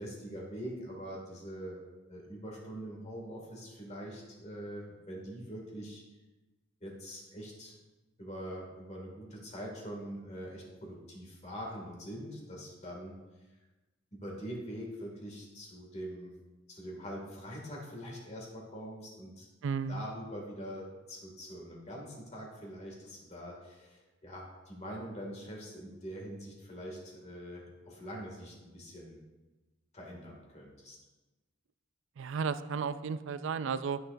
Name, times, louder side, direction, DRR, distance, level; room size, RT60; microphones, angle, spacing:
voice 1, 0.0-1.8 2.1-6.0 6.8-7.8 8.2-13.1 14.1-16.3 16.7-19.5 19.9-29.2 29.9-31.0, equal, 35° left, -2 dB, 2.3 m, -43 dB
voice 2, 19.6-20.0 32.2-34.0, right 5 dB, 65° right, 13 dB, 0.4 m, -33 dB
13.0 x 6.7 x 2.6 m, 1.2 s
head